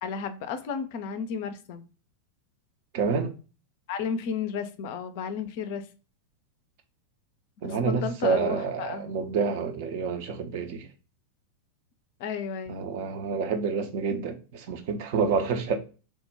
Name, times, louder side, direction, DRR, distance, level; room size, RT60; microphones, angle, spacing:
voice 1, 0.0-1.9 3.9-5.9 7.6-9.1 12.2-12.8, left 6 dB, 50° left, 0.4 m, -33 dB
voice 2, 2.9-3.4 7.6-10.9 12.7-15.8, right 5 dB, 50° right, 0.5 m, -28 dB
3.0 x 2.1 x 3.3 m
figure-of-eight pair, 90°, 0 cm